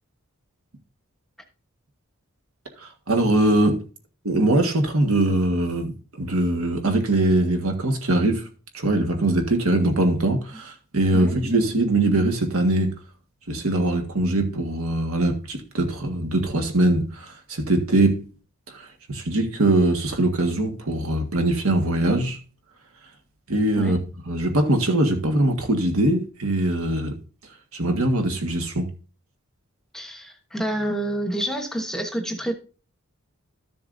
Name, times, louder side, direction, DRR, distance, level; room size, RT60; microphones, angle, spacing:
voice 1, 2.8-3.8 4.2-13.0 13.4-18.3 18.7-22.4 22.9-23.1 23.5-27.2 27.4-28.9, right 1 dB, 65° right, 1.6 m, -22 dB
voice 2, 29.9-32.5, right 1 dB, ahead, 1.1 m, -28 dB
13.0 x 6.9 x 2.6 m
head